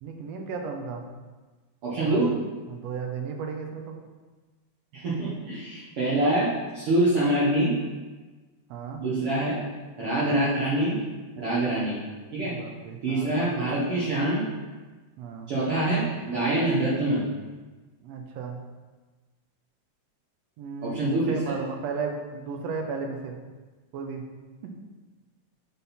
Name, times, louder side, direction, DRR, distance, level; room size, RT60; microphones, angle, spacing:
voice 1, 0.0-1.0 1.9-2.2 2.7-4.0 8.7-9.0 12.4-13.3 15.2-15.5 18.0-18.5 20.6-23.3 23.9-24.2, right 5 dB, 75° right, 3 dB, 1.7 m, -34 dB
voice 2, 1.8-2.3 4.9-7.7 9.0-9.6 10.0-11.0 11.4-12.0 12.3-12.5 13.0-14.4 15.5-17.2 20.8-21.6, right 1 dB, 55° right, -9 dB, 1.9 m, -25 dB
8.2 x 3.7 x 4.2 m, 1.3 s
omnidirectional pair, 3.4 m